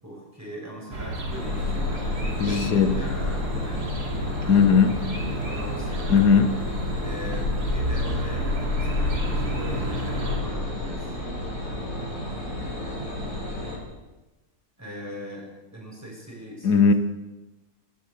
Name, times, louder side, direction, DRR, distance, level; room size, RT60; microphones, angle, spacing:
voice 1, 0.0-3.9 4.3-4.7 5.1-6.3 7.0-11.2 14.8-16.9, equal, 10° right, -2 dB, 7.3 m, -40 dB
sound 1, 0.9-10.4, right 1 dB, 80° right, 3.2 m, -31 dB
sound 2, 1.3-13.8, left 2 dB, 60° left, 5.0 m, -30 dB
voice 2, 2.4-3.0 4.5-5.0 6.1-6.6 16.6-16.9, left 6 dB, 85° left, 9 dB, 1.9 m, -18 dB
20.0 x 18.5 x 7.1 m, 1.1 s
omnidirectional pair, 1.7 m